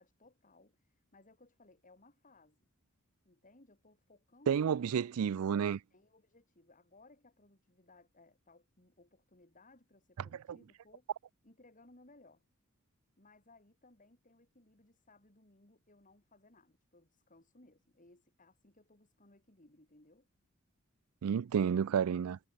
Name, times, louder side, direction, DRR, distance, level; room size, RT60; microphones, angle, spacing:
voice 1, 0.0-2.6 3.2-5.0 5.9-11.1 11.4-12.4 13.2-20.3, left 2 dB, 40° left, 4.2 m, -63 dB
voice 2, 4.5-5.8 21.2-22.4, right 7 dB, 85° right, 0.4 m, -30 dB
head